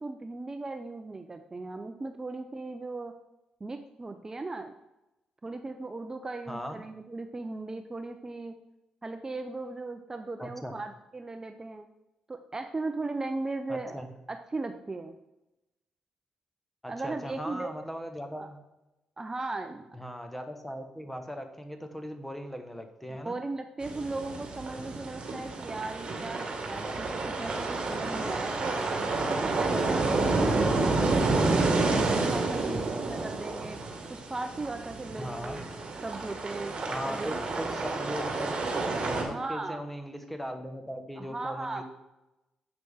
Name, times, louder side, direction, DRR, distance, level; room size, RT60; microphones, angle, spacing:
voice 1, 0.0-3.1 3.6-4.7 5.4-8.5 9.0-11.9 12.3-15.2 16.9-17.7 18.4-18.5 19.2-19.8 23.1-28.8 29.3-30.8 31.1-33.8 34.1-36.8 37.1-38.2 39.3-39.8 41.2-41.8, right 3 dB, 25° right, 7 dB, 0.5 m, -37 dB
voice 2, 6.5-6.8 10.4-10.7 13.7-14.1 16.8-18.6 19.9-23.3 35.2-35.6 36.9-38.6 39.1-41.8, equal, 5° left, 6 dB, 1.2 m, -39 dB
sound 1, 23.8-39.2, right 3 dB, 50° right, 1.8 m, -29 dB
7.6 x 5.9 x 3.6 m, 0.96 s
cardioid pair, 65°, 2 cm